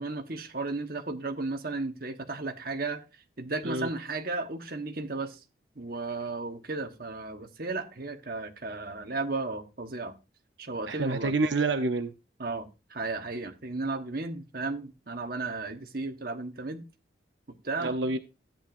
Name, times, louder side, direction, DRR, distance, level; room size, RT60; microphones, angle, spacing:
voice 1, 0.0-3.0 3.4-5.4 5.7-10.1 10.6-11.3 12.4-16.8 17.5-18.1, right 3 dB, 50° right, 1.2 m, -34 dB
voice 2, 10.9-12.1 17.8-18.2, right 3 dB, 80° right, 0.7 m, -27 dB
13.5 x 8.8 x 2.6 m
head